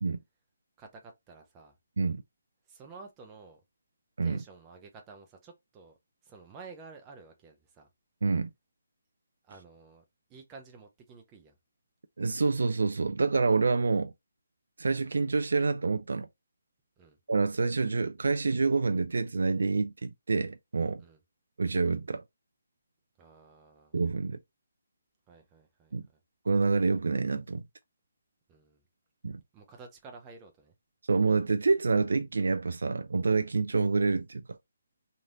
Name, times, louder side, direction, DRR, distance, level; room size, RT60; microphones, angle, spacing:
voice 1, 0.8-1.8 2.7-3.6 4.2-6.0 6.2-7.9 9.4-10.0 10.3-11.6 17.0-17.2 21.0-21.2 23.2-24.0 25.3-26.2 28.5-28.8 29.5-30.7, right 4 dB, 20° right, 0.6 m, -51 dB
voice 2, 12.2-14.1 14.8-16.3 17.3-21.0 21.6-22.2 23.9-24.4 25.9-26.0 26.5-27.6 29.2-29.4 31.1-34.6, right 4 dB, 65° right, 0.3 m, -27 dB
3.2 x 2.6 x 2.5 m
figure-of-eight pair, 150°, 0 cm